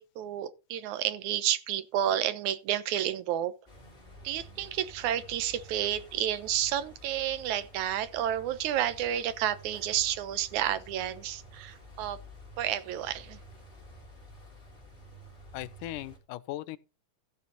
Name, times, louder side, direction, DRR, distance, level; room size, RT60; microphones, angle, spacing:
voice 1, 0.0-3.5 4.2-12.2 12.6-13.4, right 11 dB, 75° right, 2.2 m, -30 dB
sound 1, 3.7-16.2, equal, 15° left, 3.9 m, -51 dB
voice 2, 15.5-16.8, left 15 dB, 80° left, 2.2 m, -38 dB
15.0 x 6.9 x 4.1 m
omnidirectional pair, 3.7 m